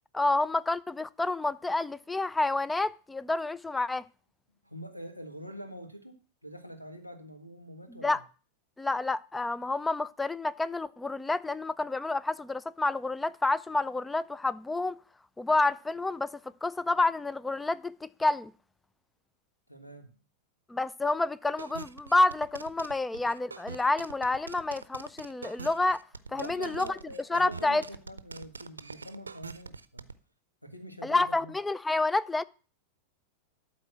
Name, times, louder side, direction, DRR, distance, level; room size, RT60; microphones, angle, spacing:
voice 1, 0.1-4.0 8.0-8.2 8.8-15.0 15.4-18.5 20.7-26.0 26.3-26.9 27.3-27.8 31.0-32.4, left 2 dB, 10° left, 0.4 m, -29 dB
voice 2, 4.6-8.2 19.7-20.2 26.3-30.1 30.6-31.5, right 1 dB, 90° left, 1.6 m, -45 dB
sound 1, 21.6-30.1, right 4 dB, 75° right, 0.6 m, -43 dB
12.5 x 4.1 x 7.6 m
figure-of-eight pair, 90°, 0 cm